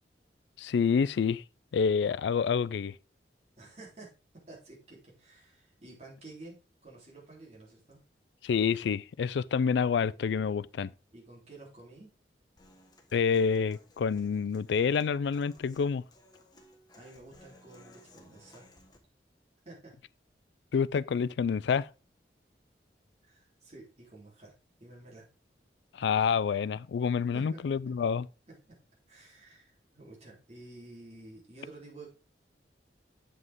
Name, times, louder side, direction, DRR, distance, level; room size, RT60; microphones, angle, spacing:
voice 1, 0.6-1.4 1.7-3.0 8.4-10.9 13.1-16.0 20.7-21.9 25.9-28.3, left 6 dB, 75° left, 0.3 m, -28 dB
voice 2, 3.6-4.1 4.5-6.6 6.8-8.0 11.1-12.1 17.0-18.7 19.7-19.9 23.2-24.5 24.8-25.2 27.3-28.0 28.5-28.8 29.1-32.1, right 2 dB, 35° right, 3.4 m, -51 dB
Human voice / Acoustic guitar, 12.6-19.0, left 2 dB, 25° left, 1.4 m, -59 dB
7.9 x 7.6 x 3.6 m
head